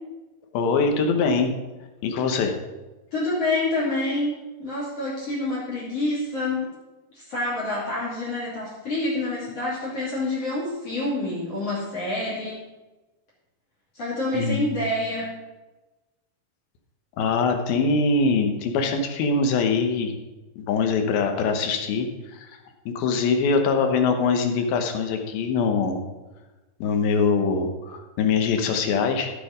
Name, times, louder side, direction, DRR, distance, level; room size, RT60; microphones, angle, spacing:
voice 1, 0.5-1.5 2.0-2.5 14.3-14.8 17.2-20.1 20.6-22.6 22.9-26.0 26.8-29.3, left 4 dB, 75° left, 5 dB, 2.8 m, -23 dB
voice 2, 3.1-6.7 7.1-12.6 13.9-15.3, left 2 dB, 40° left, -5 dB, 3.3 m, -27 dB
14.5 x 6.5 x 5.1 m, 1.1 s
omnidirectional pair, 4.5 m